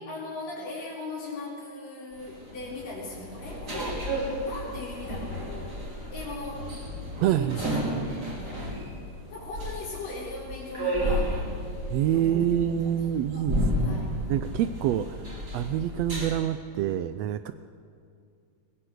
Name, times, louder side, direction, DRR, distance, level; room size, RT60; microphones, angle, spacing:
voice 1, 0.0-4.1 4.4-5.8 6.1-6.7 7.3-7.8 8.2-8.7 9.3-11.5 12.1-12.4 12.9-13.0 13.3-14.1, left 2 dB, 85° left, -9 dB, 5.9 m, -39 dB
sound 1, 2.1-16.3, equal, 30° right, 4.2 m, -32 dB
voice 2, 7.2-7.6 11.9-13.6 13.9-14.0 14.3-17.5, right 11 dB, 90° right, 11 dB, 1.4 m, -26 dB
21.5 x 20.0 x 7.9 m, 2.4 s
omnidirectional pair, 3.8 m